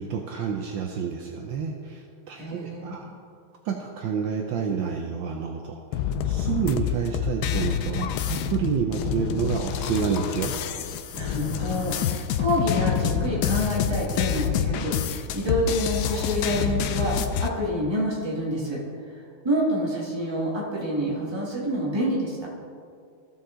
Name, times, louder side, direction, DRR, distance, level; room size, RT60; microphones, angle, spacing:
voice 1, 0.0-3.1 3.6-10.5, right 7 dB, 70° right, 2 dB, 1.3 m, -29 dB
voice 2, 2.3-2.9 11.1-14.9 15.3-18.8 19.4-22.4, equal, 15° right, -4 dB, 1.5 m, -27 dB
sound 1, 5.9-17.5, left 8 dB, 85° left, 0.8 m, -27 dB
15.0 x 5.6 x 3.8 m, 2.3 s
omnidirectional pair, 2.3 m